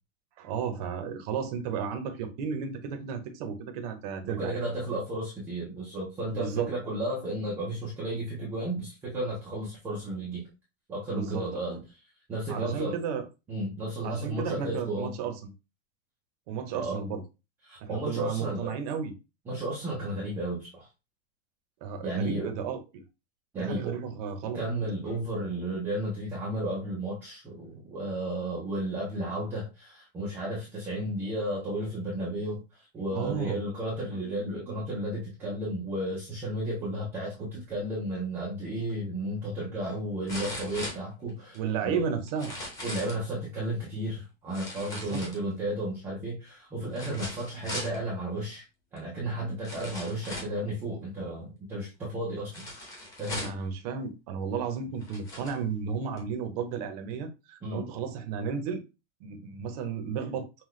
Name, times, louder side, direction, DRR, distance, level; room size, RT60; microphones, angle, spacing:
voice 1, 0.4-4.6 6.3-6.7 11.1-11.5 12.5-13.3 14.0-15.5 16.5-17.2 17.8-19.1 21.8-23.0 23.6-24.6 33.1-33.6 41.5-42.5 44.9-45.2 53.3-58.8 59.2-60.5, right 6 dB, 35° right, 0.7 m, -33 dB
voice 2, 4.2-10.4 10.9-11.8 12.3-13.0 13.5-15.1 16.7-17.0 17.6-18.7 19.5-20.9 22.0-22.5 23.5-24.0 24.5-42.1 42.8-48.6 48.9-52.7 53.2-53.6 57.6-57.8, right 1 dB, 5° right, 0.3 m, -33 dB
sound 1, 38.9-39.0 40.3-41.6 42.3-43.2 44.5-45.7 46.9-48.0 49.0-49.1 49.6-50.6 52.5-53.7 54.5-54.6 55.0-55.6 56.2-56.3, left 1 dB, 10° left, 0.7 m, -39 dB
5.6 x 2.2 x 3.1 m
supercardioid pair, 180°, 34 cm